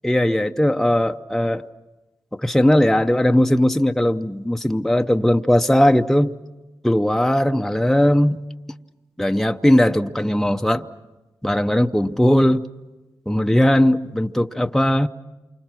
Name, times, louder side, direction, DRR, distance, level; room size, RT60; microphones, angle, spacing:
voice 1, 0.0-1.7 2.3-6.3 6.8-8.4 9.2-10.9 11.4-12.6 13.3-15.1, left 1 dB, 5° left, 0.7 m, -18 dB
28.0 x 25.5 x 6.0 m
cardioid pair, 65°, 9 cm